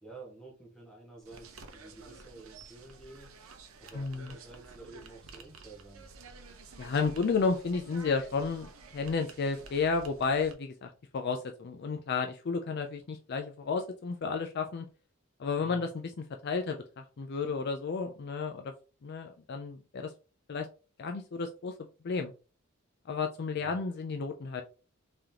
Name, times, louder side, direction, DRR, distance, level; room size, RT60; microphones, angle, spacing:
voice 1, 0.0-3.4 3.8-6.1 15.6-15.8 23.6-23.8, right 2 dB, 5° left, -2 dB, 1.5 m, -51 dB
sound 1, 1.2-10.5, right 4 dB, 80° right, 0.7 m, -51 dB
voice 2, 3.9-4.3 6.8-14.9 15.4-16.1 16.4-18.7 19.0-20.1 20.5-20.7 21.0-21.7 22.0-22.3 23.1-24.6, left 4 dB, 50° left, 5 dB, 0.4 m, -32 dB
3.6 x 3.3 x 2.8 m, 0.34 s
head